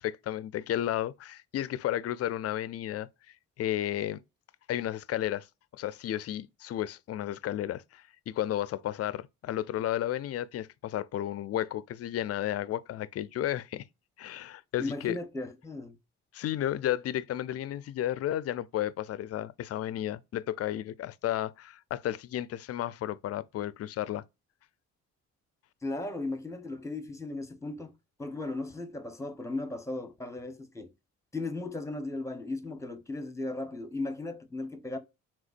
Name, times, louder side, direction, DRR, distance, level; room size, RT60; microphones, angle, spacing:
voice 1, 0.0-3.1 3.6-4.2 4.7-5.5 5.7-13.9 14.2-15.2 16.3-24.2, left 12 dB, 50° left, 0.4 m, -33 dB
voice 2, 14.8-16.0 25.8-27.9 28.2-30.9 31.3-35.0, left 2 dB, 10° left, 0.9 m, -36 dB
5.1 x 3.6 x 2.5 m
cardioid pair, 90°, 30 cm